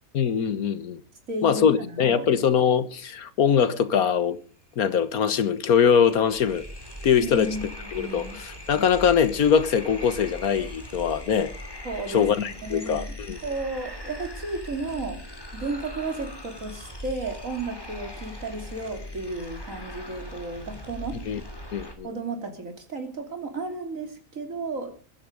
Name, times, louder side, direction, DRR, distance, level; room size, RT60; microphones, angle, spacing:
voice 1, 0.1-1.0 1.4-4.4 4.8-6.7 7.0-7.5 7.9-11.5 12.1-13.4 21.3-21.4 21.7-22.1, left 7 dB, 90° left, 1.7 m, -22 dB
voice 2, 1.3-2.3 7.2-8.4 11.9-13.1 13.4-15.2 15.5-21.2 22.0-24.9, right 3 dB, 65° right, 3.3 m, -33 dB
sound 1, 5.3-21.9, left 1 dB, 15° left, 2.5 m, -40 dB
22.0 x 10.5 x 5.2 m
omnidirectional pair, 1.5 m